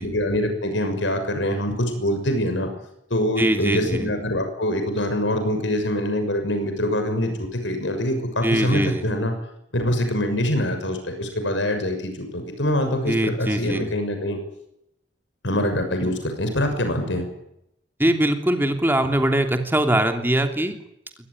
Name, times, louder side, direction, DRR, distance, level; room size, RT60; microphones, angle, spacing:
voice 1, 0.0-2.7 3.1-9.3 9.7-14.4 15.4-17.3, left 1 dB, 85° left, 6 dB, 6.6 m, -24 dB
voice 2, 3.4-4.1 8.4-9.0 13.1-13.8 18.0-20.8, right 1 dB, 10° right, 5 dB, 2.9 m, -22 dB
23.5 x 19.0 x 9.7 m, 0.80 s
head